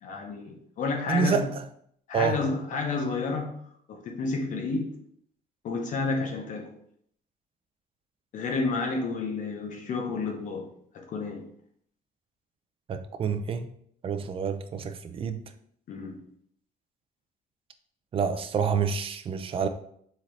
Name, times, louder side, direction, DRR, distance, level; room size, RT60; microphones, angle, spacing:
voice 1, 0.0-1.5 2.1-3.6 3.9-4.9 5.6-6.7 8.3-10.7 10.9-11.4 15.9-16.2, left 4 dB, 55° left, 0.7 m, -30 dB
voice 2, 1.1-1.6 2.1-2.4 12.9-13.7 14.0-15.4 18.1-19.7, right 6 dB, 35° right, 0.5 m, -28 dB
4.3 x 3.8 x 3.2 m
cardioid pair, 125°, 16 cm